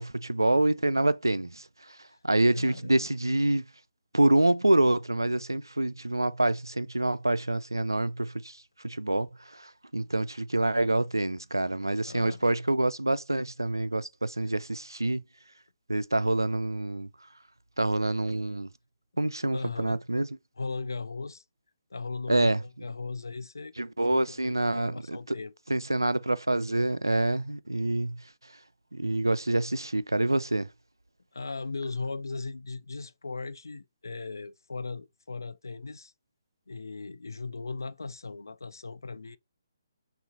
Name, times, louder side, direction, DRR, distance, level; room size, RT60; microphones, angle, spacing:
voice 1, 0.0-1.6 2.2-3.6 4.1-8.6 8.8-9.3 9.5-15.2 15.9-17.1 17.8-18.7 19.2-20.3 22.3-22.6 23.8-25.4 25.7-28.2 28.9-30.7, right 2 dB, 85° right, 0.3 m, -26 dB
voice 2, 2.5-3.0 12.0-12.4 19.5-20.0 20.6-21.4 21.9-23.7 24.1-25.5 31.3-36.1 36.7-39.4, left 3 dB, 70° left, 0.4 m, -38 dB
6.4 x 2.5 x 2.6 m
figure-of-eight pair, 135°, 2 cm